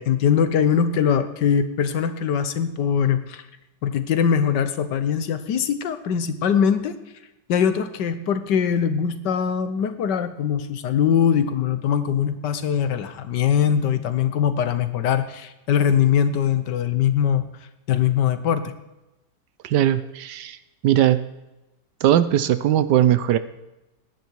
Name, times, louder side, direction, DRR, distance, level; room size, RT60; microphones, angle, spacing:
voice 1, 0.0-3.4 3.8-7.0 7.5-17.5 17.9-18.7, left 8 dB, 70° left, 11 dB, 1.5 m, -22 dB
voice 2, 19.6-20.6 20.8-21.2 22.0-23.4, right 11 dB, 70° right, 14 dB, 1.3 m, -19 dB
19.0 x 11.0 x 4.6 m, 0.98 s
omnidirectional pair, 1.9 m